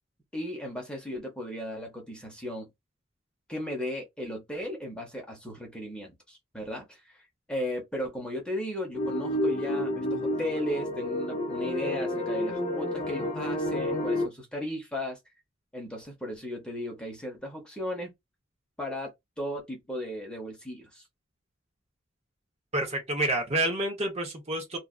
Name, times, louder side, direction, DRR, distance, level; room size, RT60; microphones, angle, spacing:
voice 1, 0.3-2.7 3.5-7.2 7.5-15.2 15.7-18.1 18.8-21.0, left 1 dB, 5° left, 0.9 m, -36 dB
sound 1, 8.9-14.3, left 1 dB, 35° left, 0.6 m, -30 dB
voice 2, 22.7-24.8, right 1 dB, 35° right, 0.9 m, -28 dB
2.7 x 2.4 x 2.4 m
head